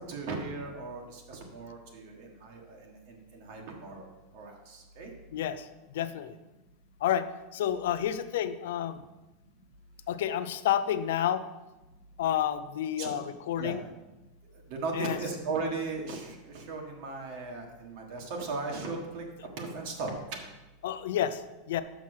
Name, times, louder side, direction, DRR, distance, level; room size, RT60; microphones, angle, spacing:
voice 1, 0.1-4.0 4.3-5.1 13.0-13.1 13.6-13.8 14.5-19.2 19.6-20.1, right 3 dB, 55° right, 1 dB, 1.5 m, -37 dB
voice 2, 5.3-6.3 7.0-7.3 7.5-9.0 10.1-11.4 12.2-13.8 14.9-15.2 20.8-21.8, left 10 dB, 80° left, 12 dB, 0.5 m, -30 dB
5.9 x 5.6 x 6.3 m, 1.1 s
supercardioid pair, 160°, 0 cm